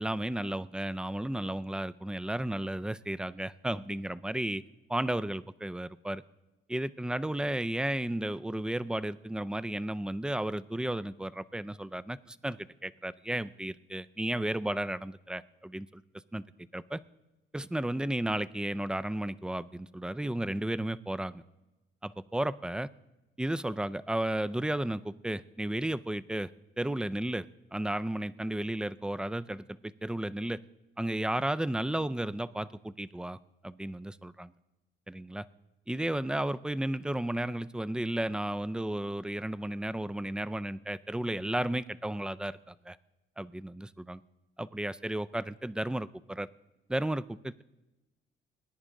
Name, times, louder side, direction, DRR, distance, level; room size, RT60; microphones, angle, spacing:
voice 1, 0.0-4.6 4.9-6.2 6.7-16.0 16.3-16.4 16.7-17.0 17.5-21.4 22.0-22.9 23.4-26.5 26.8-30.6 31.0-33.4 33.6-34.5 35.1-35.5 35.9-43.0 43.4-44.2 44.6-46.5 46.9-47.6, right 1 dB, 5° right, 16 dB, 0.3 m, -33 dB
19.5 x 10.0 x 3.7 m, 1.0 s
cardioid pair, 90°, 20 cm